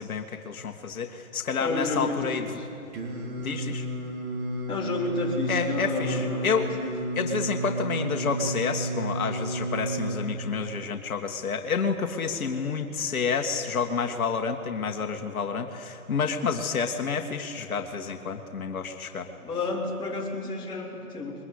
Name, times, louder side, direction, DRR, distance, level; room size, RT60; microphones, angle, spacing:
voice 1, 0.0-2.6 3.4-3.9 5.5-6.7 7.2-19.3, left 5 dB, 70° left, 4 dB, 2.0 m, -29 dB
voice 2, 1.6-2.3 4.7-6.7 19.4-21.3, left 2 dB, 10° left, -5 dB, 3.9 m, -30 dB
Singing, 2.9-10.2, right 1 dB, 30° right, 3.6 m, -32 dB
22.0 x 21.0 x 9.9 m, 3.0 s
hypercardioid pair, 150°, 44 cm